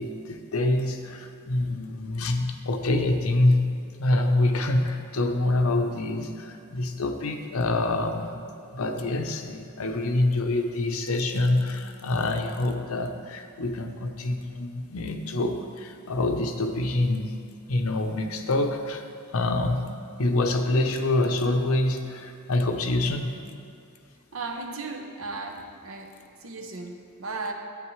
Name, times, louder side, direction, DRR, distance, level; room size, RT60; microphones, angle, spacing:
voice 1, 0.0-3.6 4.0-8.4 8.7-17.3 17.7-19.0 19.3-19.9 20.2-23.3, left 2 dB, 80° left, 5 dB, 0.7 m, -26 dB
voice 2, 24.3-26.1 26.4-27.5, right 3 dB, 70° right, 4 dB, 0.8 m, -35 dB
11.0 x 8.3 x 3.2 m, 2.4 s
head